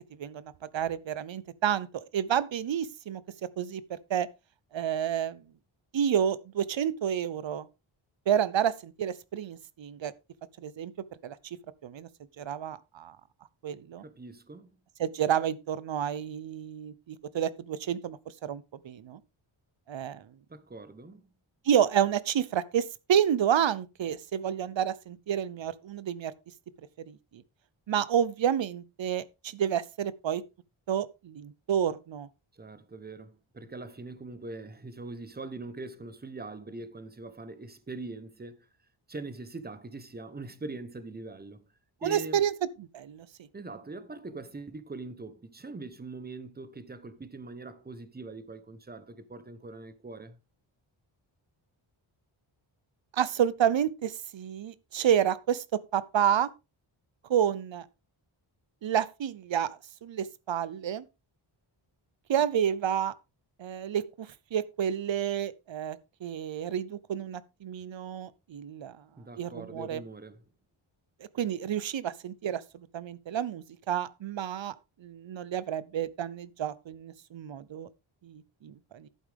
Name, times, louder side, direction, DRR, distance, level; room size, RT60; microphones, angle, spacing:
voice 1, 0.2-3.2 3.6-4.3 4.7-5.4 5.9-7.7 8.3-10.1 10.6-10.9 11.2-11.4 11.8-12.1 12.4-13.2 13.6-14.0 15.0-19.2 19.9-20.2 21.7-26.3 27.1-27.4 27.9-30.4 30.9-32.3 42.0-42.5 42.9-43.3 53.1-56.5 57.3-57.8 58.8-61.0 62.3-63.1 63.6-69.0 69.4-70.0 71.3-74.7 75.0-77.9 78.2-79.1, right 9 dB, 65° right, 0.8 m, -30 dB
voice 2, 14.0-14.7 20.5-21.3 32.5-38.7 39.1-41.6 42.0-42.4 43.5-50.4 69.2-70.4, right 3 dB, 20° right, 0.9 m, -42 dB
11.5 x 8.5 x 3.5 m
wide cardioid pair, 165°, 49 cm